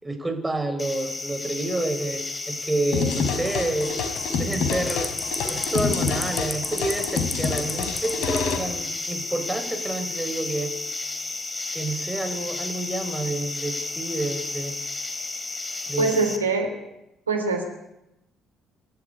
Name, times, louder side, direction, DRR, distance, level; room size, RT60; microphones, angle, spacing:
voice 1, 0.0-3.9 4.4-5.1 5.5-10.7 11.7-14.7 15.9-16.2, right 2 dB, 15° right, 7 dB, 5.8 m, -29 dB
sound 1, 0.8-16.4, left 3 dB, 25° left, 4.3 m, -32 dB
sound 2, 2.9-8.6, left 5 dB, 65° left, 4.7 m, -27 dB
voice 2, 16.0-16.7 17.3-17.7, right 4 dB, 90° right, 5 dB, 3.5 m, -23 dB
26.5 x 13.5 x 9.9 m, 0.90 s
hypercardioid pair, 50°, 0 cm